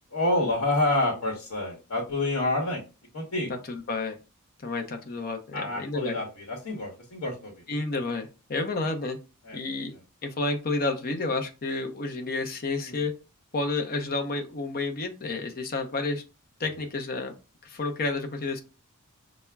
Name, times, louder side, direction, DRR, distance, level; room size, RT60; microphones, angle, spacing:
voice 1, 0.1-2.8 3.1-3.5 5.5-8.0 9.4-9.6 9.9-10.0 12.8-13.0, left 2 dB, 80° left, -1 dB, 0.9 m, -28 dB
voice 2, 3.5-4.2 4.6-6.2 7.7-9.2 9.5-9.9 10.2-13.1 13.5-16.2 16.6-17.3 17.6-18.6, left 3 dB, 40° left, 5 dB, 0.6 m, -30 dB
5.8 x 2.1 x 2.2 m, 0.31 s
head